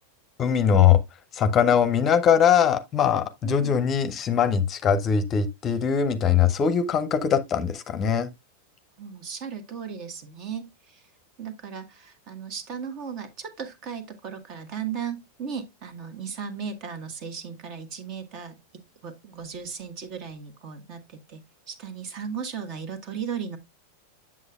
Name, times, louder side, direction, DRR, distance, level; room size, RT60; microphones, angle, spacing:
voice 1, 0.4-1.0 1.3-8.3, left 8 dB, 30° left, 0.7 m, -21 dB
voice 2, 3.4-3.8 9.0-11.0 11.4-18.6 19.0-23.6, right 7 dB, 40° right, 1.4 m, -36 dB
8.0 x 7.3 x 2.3 m
figure-of-eight pair, 90°, 0 cm